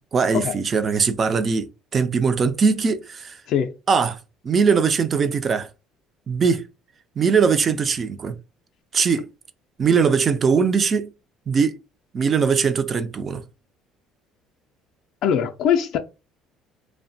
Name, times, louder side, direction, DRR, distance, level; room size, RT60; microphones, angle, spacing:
voice 1, 0.1-3.4 3.9-4.2 4.4-5.7 6.3-6.6 7.2-8.3 8.9-9.3 9.8-11.1 11.5-11.7 12.1-13.4, right 5 dB, 30° right, 0.3 m, -20 dB
voice 2, 15.2-16.0, left 8 dB, 55° left, 0.3 m, -21 dB
2.7 x 2.1 x 2.6 m
cardioid pair, 155°, 0 cm